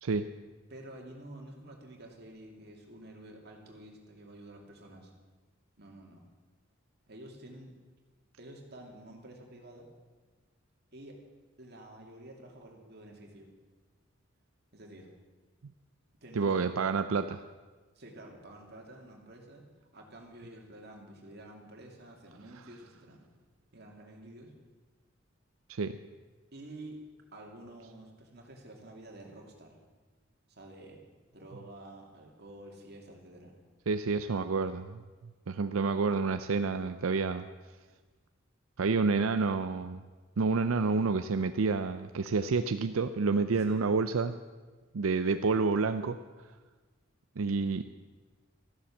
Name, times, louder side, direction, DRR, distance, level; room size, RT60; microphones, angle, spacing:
voice 1, 0.7-5.1 5.8-6.3 7.1-7.7 8.4-9.9 10.9-11.2 11.6-13.5 14.7-15.1 16.2-16.7 17.9-19.7 19.9-23.2 23.7-24.5 26.5-27.0 27.3-29.8 30.5-31.0 31.3-33.6 43.6-43.8, right 1 dB, 50° right, 1 dB, 2.6 m, -49 dB
voice 2, 16.3-17.4 25.7-26.0 33.9-35.0 35.5-37.5 38.8-40.0 40.4-44.4 44.9-46.2 47.4-47.8, right 4 dB, 85° right, 9 dB, 0.5 m, -29 dB
14.0 x 11.5 x 7.2 m, 1.3 s
head